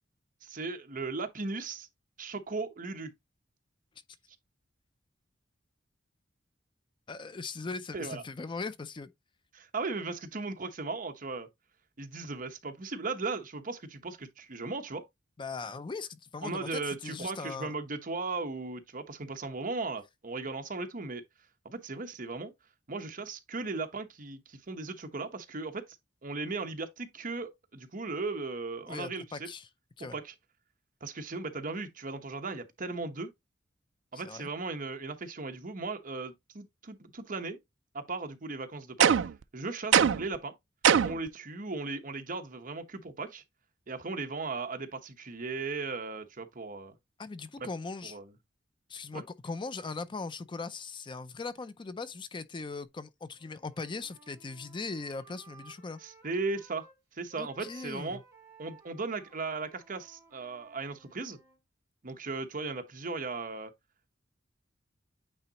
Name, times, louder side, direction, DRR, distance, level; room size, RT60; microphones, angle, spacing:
voice 1, 0.4-1.9 2.2-3.1 7.9-8.2 9.5-11.5 12.0-15.1 16.4-21.2 21.6-22.5 22.9-25.8 26.2-29.5 30.0-30.3 31.0-33.3 34.1-37.6 37.9-39.2 39.5-40.5 41.0-43.4 43.9-47.0 47.6-47.7 48.0-48.3 49.1-49.2 56.0-56.9 57.1-58.2 58.6-61.4 62.0-63.7, right 3 dB, 45° right, 1.0 m, -37 dB
voice 2, 7.1-9.1 15.4-17.8 28.9-29.7 30.0-30.2 34.1-34.5 47.2-48.2 48.9-56.0 57.4-58.2, left 4 dB, 25° left, 0.4 m, -39 dB
sound 1, 39.0-39.4 39.9-40.4 40.8-41.3, right 8 dB, 70° right, 0.4 m, -22 dB
Wind instrument woodwind instrument, 53.4-57.0 57.3-61.6, right 3 dB, 15° right, 3.6 m, -58 dB
8.8 x 3.9 x 2.9 m
head